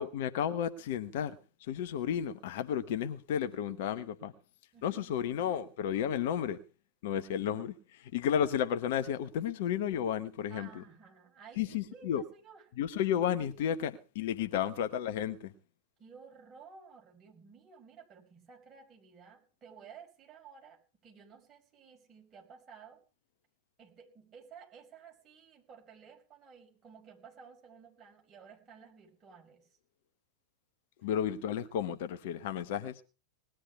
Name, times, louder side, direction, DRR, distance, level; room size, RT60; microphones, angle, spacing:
voice 1, 0.0-4.3 4.8-6.6 7.0-10.8 11.6-12.2 12.8-15.5 31.0-33.0, left 9 dB, 50° left, 1.0 m, -32 dB
voice 2, 4.7-5.2 10.5-12.7 14.6-14.8 16.0-23.0 23.8-29.7 31.0-31.1, right 6 dB, 25° right, 5.4 m, -54 dB
19.5 x 10.5 x 4.7 m
figure-of-eight pair, 90°, 0 cm